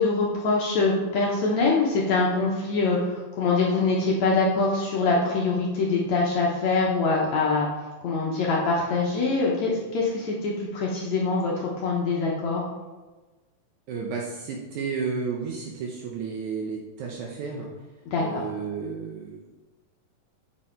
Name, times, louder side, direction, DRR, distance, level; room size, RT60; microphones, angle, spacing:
voice 1, 0.0-7.7 8.0-12.6 18.1-18.4, left 3 dB, 70° left, -3 dB, 1.8 m, -24 dB
voice 2, 13.9-17.7 18.2-19.4, right 5 dB, 75° right, -1 dB, 1.9 m, -32 dB
8.8 x 5.2 x 4.4 m, 1.2 s
omnidirectional pair, 4.3 m